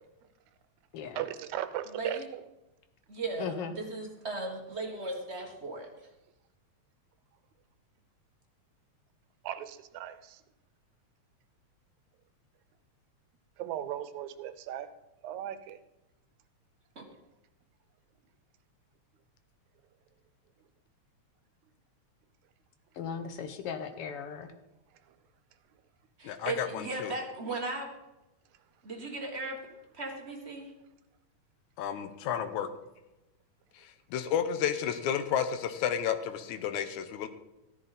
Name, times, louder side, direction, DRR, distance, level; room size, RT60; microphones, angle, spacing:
voice 1, 1.2-2.2 9.4-10.4 13.6-14.9 15.2-15.8, right 11 dB, 80° right, 12 dB, 2.1 m, -37 dB
voice 2, 1.8-2.2 3.1-6.1 16.9-17.0 26.2-27.9 28.8-29.6 29.9-30.7, right 2 dB, 40° right, 1 dB, 1.0 m, -37 dB
voice 3, 3.4-3.7 22.9-24.5, left 7 dB, 65° left, 8 dB, 1.5 m, -37 dB
voice 4, 26.2-27.1 31.8-32.7 34.1-37.3, left 8 dB, 90° left, 9 dB, 2.2 m, -31 dB
14.5 x 10.0 x 4.1 m, 0.97 s
omnidirectional pair, 3.3 m